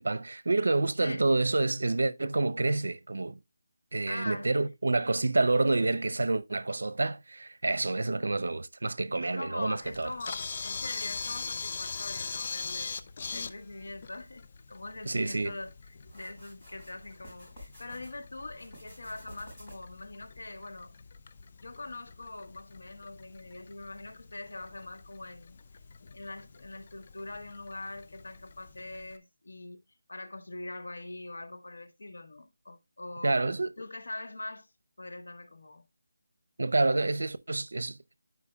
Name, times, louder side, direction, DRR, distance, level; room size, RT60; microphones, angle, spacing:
voice 1, 0.0-3.4 3.9-10.1 15.0-15.6 33.2-33.7 36.6-38.2, right 2 dB, 75° right, 0.6 m, -28 dB
voice 2, 4.1-4.5 9.1-13.0 13.3-15.7 16.1-20.9 21.6-25.6 26.1-29.8 30.1-33.4 33.8-34.7 35.0-35.8, left 2 dB, 80° left, 1.4 m, -43 dB
Camera, 9.8-29.2, left 4 dB, 35° left, 0.5 m, -42 dB
sound 1, 16.1-18.1 18.5-20.0, right 1 dB, 10° left, 4.6 m, -52 dB
12.5 x 4.8 x 2.3 m
figure-of-eight pair, 170°, 0 cm